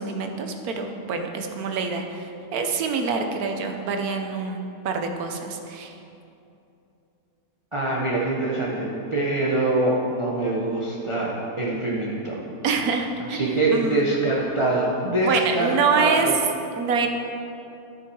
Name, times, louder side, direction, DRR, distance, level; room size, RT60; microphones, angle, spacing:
voice 1, 0.0-5.9 12.6-14.0 15.2-16.3 16.8-17.1, right 5 dB, 90° right, 4 dB, 1.3 m, -26 dB
voice 2, 7.7-12.4 13.3-16.3, right 2 dB, 25° right, -5 dB, 0.9 m, -24 dB
13.5 x 5.9 x 4.7 m, 2.7 s
omnidirectional pair, 1.5 m